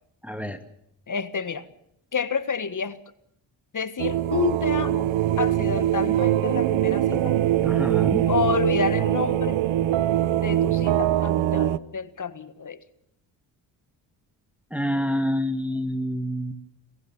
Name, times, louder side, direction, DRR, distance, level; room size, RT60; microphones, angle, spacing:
voice 1, 0.2-0.6 7.6-8.3 14.7-16.5, equal, 5° right, 6 dB, 1.9 m, -27 dB
voice 2, 1.1-1.7 2.1-3.0 3.7-5.1 5.4-7.4 8.3-9.6 10.4-12.8, left 6 dB, 40° left, 13 dB, 1.6 m, -29 dB
sound 1, 4.0-11.8, right 12 dB, 75° right, 0.9 m, -22 dB
27.5 x 15.0 x 7.1 m, 0.75 s
supercardioid pair, 65°, 48 cm